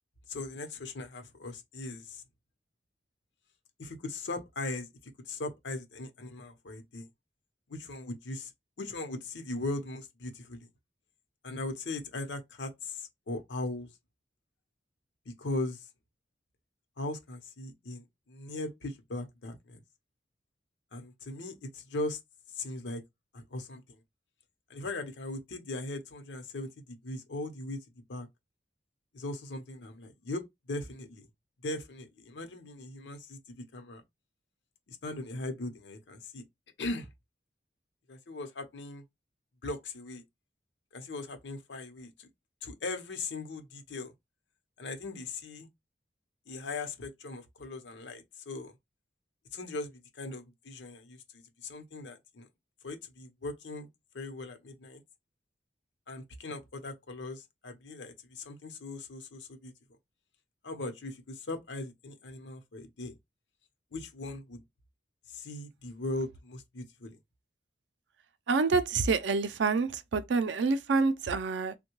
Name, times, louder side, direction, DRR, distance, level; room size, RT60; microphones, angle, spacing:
voice 1, 0.3-2.2 3.8-4.9 5.3-7.1 7.7-8.5 8.8-10.7 11.4-13.9 15.3-15.9 17.0-19.8 20.9-22.2 22.5-23.0 23.3-24.0 24.7-27.8 28.1-28.3 29.1-30.4 30.7-31.3 31.6-34.0 34.9-36.4 36.8-37.1 38.1-39.0 39.6-40.2 40.9-42.3 42.6-44.1 44.8-45.7 46.5-48.7 49.5-51.2 51.6-52.5 52.8-53.9 54.1-55.0 56.1-59.7 60.6-63.2 63.9-64.6 65.3-67.2, left 2 dB, 90° left, 0.7 m, -39 dB
voice 2, 68.5-71.7, right 4 dB, 85° right, 0.4 m, -27 dB
3.5 x 2.2 x 2.9 m
head